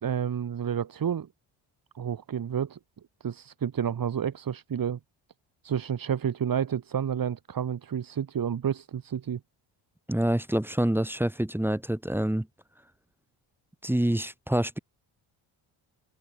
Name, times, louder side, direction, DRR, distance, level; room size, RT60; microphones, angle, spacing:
voice 1, 0.0-1.3 2.0-2.8 3.2-5.0 5.6-9.4, right 8 dB, 40° right, 1.8 m, -30 dB
voice 2, 10.1-12.5 13.8-14.8, right 1 dB, 5° right, 0.9 m, -26 dB
open air
cardioid pair, 95°, 50 cm